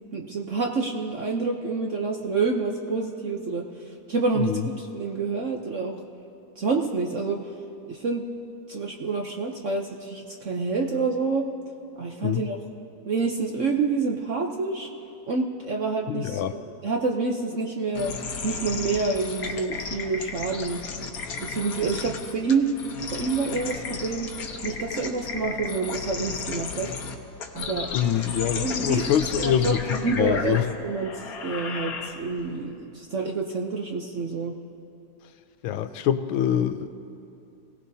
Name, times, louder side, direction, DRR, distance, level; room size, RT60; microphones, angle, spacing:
voice 1, 0.1-5.9 6.6-7.4 7.9-8.2 8.7-11.4 12.0-12.6 13.0-14.9 15.3-16.4 16.8-18.1 18.4-20.8 21.4-22.7 23.1-24.3 24.6-26.9 27.5-27.9 28.5-31.1 31.4-34.5, right 4 dB, 55° right, 1 dB, 0.9 m, -28 dB
voice 2, 16.1-16.5 27.9-30.6 35.6-36.9, left 10 dB, 85° left, 10 dB, 1.5 m, -25 dB
sound 1, 17.9-32.5, left 5 dB, 55° left, 1.3 m, -34 dB
26.5 x 18.0 x 2.8 m, 2.6 s
omnidirectional pair, 2.1 m